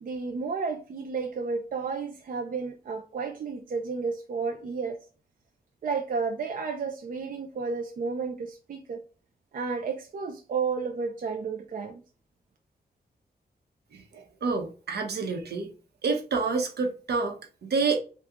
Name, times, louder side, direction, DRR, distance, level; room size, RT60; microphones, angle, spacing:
voice 1, 0.0-5.0 5.8-9.0 9.5-12.0, right 5 dB, 55° right, 0.5 m, -32 dB
voice 2, 13.9-15.7 16.0-18.0, right 4 dB, 75° right, 0.9 m, -28 dB
3.6 x 2.3 x 2.9 m
wide cardioid pair, 105°, 17 cm